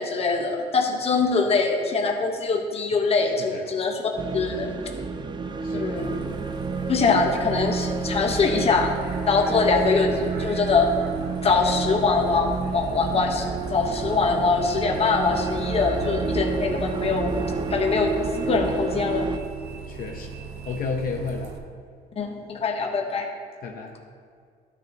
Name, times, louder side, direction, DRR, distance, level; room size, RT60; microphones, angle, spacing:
voice 1, 0.0-4.0 4.3-4.8 5.7-6.2 6.9-8.9 9.3-10.1 10.4-10.9 11.4-13.4 13.7-17.3 17.7-18.1 18.5-19.3 22.2-23.3, left 4 dB, 35° left, 2 dB, 1.2 m, -23 dB
sound 1, 4.2-19.4, right 4 dB, 25° right, 0.5 m, -30 dB
voice 2, 5.6-6.1 19.9-20.3 20.7-21.5 23.6-23.9, left 4 dB, 60° left, 1 dB, 0.9 m, -32 dB
Bus, 6.0-21.6, right 6 dB, 75° right, 0.9 m, -37 dB
12.5 x 6.2 x 2.9 m, 2.1 s
cardioid pair, 110°, 17 cm